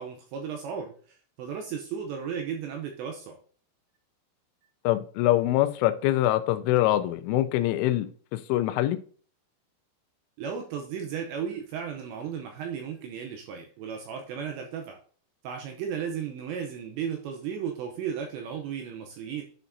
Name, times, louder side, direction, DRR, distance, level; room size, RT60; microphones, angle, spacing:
voice 1, 0.0-3.4 10.4-15.0 15.4-19.4, right 7 dB, 80° right, 2.6 m, -35 dB
voice 2, 4.8-9.0, left 14 dB, 85° left, 2.9 m, -24 dB
11.0 x 5.5 x 2.6 m
omnidirectional pair, 5.8 m